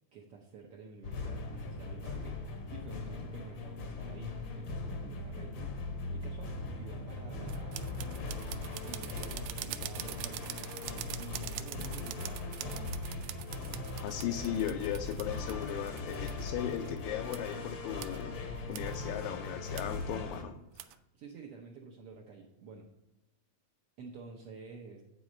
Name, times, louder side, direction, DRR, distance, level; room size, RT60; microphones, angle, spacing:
voice 1, 0.1-5.7 6.1-8.0 8.8-10.6 11.2-13.0 21.1-22.9 24.0-25.0, right 4 dB, 70° right, 0 dB, 1.4 m, -50 dB
sound 1, 1.0-20.4, left 3 dB, 60° left, 1.2 m, -39 dB
sound 2, 7.5-17.0 17.3-17.5 18.0-18.2 18.7-19.0 19.8-20.0 20.8-21.0, right 14 dB, 90° right, 2.1 m, -44 dB
voice 2, 14.0-18.4 18.7-20.9, left 10 dB, 80° left, 5 dB, 1.8 m, -37 dB
9.1 x 4.1 x 6.4 m, 0.97 s
omnidirectional pair, 3.5 m